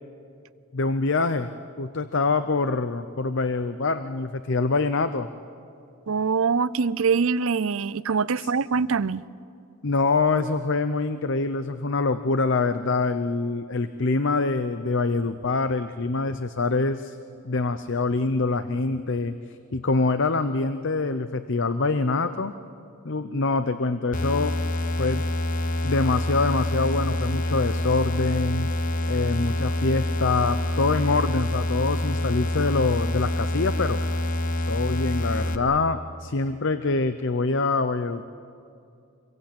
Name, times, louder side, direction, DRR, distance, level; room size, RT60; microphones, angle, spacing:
voice 1, 0.7-1.5 1.8-5.3 8.4-8.5 9.8-17.2 17.4-19.3 19.7-22.5 23.0-24.6 25.0-25.2 25.8-28.7 29.1-34.0 34.7-38.3, left 3 dB, 55° left, 0.7 m, -25 dB
voice 2, 6.1-9.2, right 5 dB, 65° right, 0.6 m, -24 dB
sound 1, 24.1-35.6, left 1 dB, 35° left, 1.2 m, -26 dB
26.0 x 22.0 x 8.7 m
head